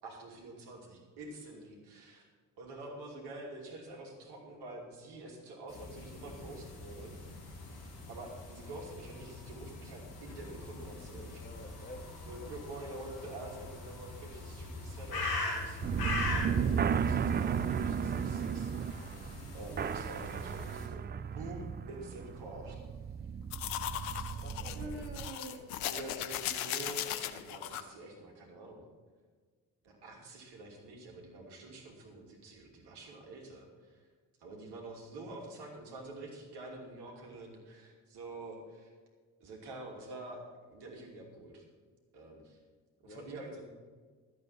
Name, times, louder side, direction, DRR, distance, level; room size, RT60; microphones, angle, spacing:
voice 1, 0.0-2.2 2.6-7.2 8.1-11.5 12.3-19.0 19.5-21.0 21.3-23.3 23.9-24.4 24.7-28.9 29.8-34.0 34.4-38.9 39.4-41.6 42.1-42.6 43.0-43.7, right 2 dB, 65° right, 0 dB, 2.9 m, -47 dB
sound 1, 5.7-20.9, left 2 dB, 55° left, 3.3 m, -41 dB
voice 2, 11.4-12.5 24.4-25.1 43.0-43.5, left 1 dB, 25° left, 2 dB, 2.5 m, -50 dB
sound 2, 15.8-25.3, right 7 dB, 25° right, 0.4 m, -34 dB
sound 3, 23.5-27.8, left 11 dB, 80° left, 0.8 m, -38 dB
13.5 x 8.1 x 5.8 m, 1.5 s
figure-of-eight pair, 45°, 43 cm